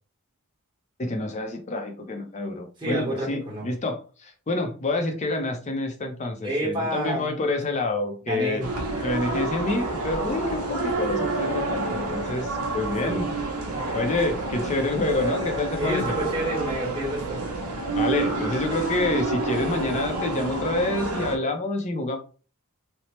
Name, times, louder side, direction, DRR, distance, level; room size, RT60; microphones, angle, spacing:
voice 1, 1.0-8.6 9.0-13.3 13.7-16.2 18.0-22.2, left 2 dB, 30° left, 4 dB, 0.4 m, -28 dB
voice 2, 2.8-3.7 6.4-7.5 8.3-8.7 12.8-13.2 15.7-17.4, right 1 dB, 20° right, -4 dB, 1.0 m, -29 dB
sound 1, 8.6-21.4, right 2 dB, 75° right, 0.7 m, -29 dB
2.8 x 2.0 x 3.0 m, 0.38 s
head